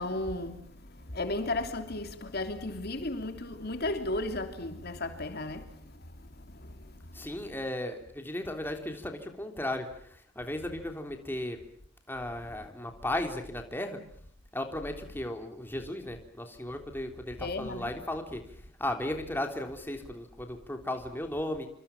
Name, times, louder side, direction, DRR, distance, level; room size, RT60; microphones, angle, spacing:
voice 1, 0.0-7.3 17.4-17.9, left 2 dB, 55° left, 3.2 m, -35 dB
voice 2, 7.1-11.6 12.1-14.0 14.5-18.4 18.8-21.7, left 1 dB, 10° left, 3.4 m, -35 dB
28.0 x 26.5 x 7.3 m
head